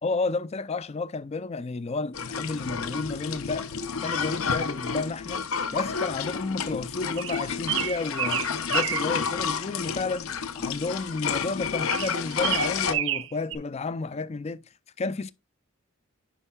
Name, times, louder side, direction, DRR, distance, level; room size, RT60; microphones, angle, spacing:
voice 1, 0.0-3.7 4.0-5.4 5.7-10.3 10.6-14.6 15.0-15.3, left 3 dB, 30° left, 0.4 m, -31 dB
sound 1, 2.1-12.9, left 6 dB, 85° left, 0.8 m, -30 dB
sound 2, 7.2-9.1 11.9-13.6, right 12 dB, 65° right, 0.6 m, -29 dB
9.8 x 5.5 x 2.3 m
head